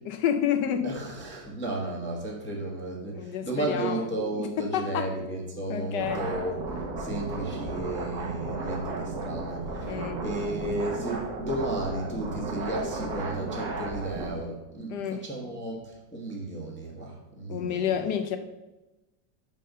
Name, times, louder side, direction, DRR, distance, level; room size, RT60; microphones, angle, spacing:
voice 1, 0.1-0.9 3.1-4.1 4.4-5.1 5.7-6.3 9.9-10.2 14.9-15.2 17.5-18.4, left 9 dB, 75° left, 8 dB, 1.1 m, -29 dB
voice 2, 0.8-17.9, right 1 dB, 10° left, -2 dB, 0.9 m, -34 dB
sound 1, 6.0-14.3, right 3 dB, 60° right, 1.5 m, -34 dB
5.5 x 5.0 x 6.5 m, 1.0 s
omnidirectional pair, 2.0 m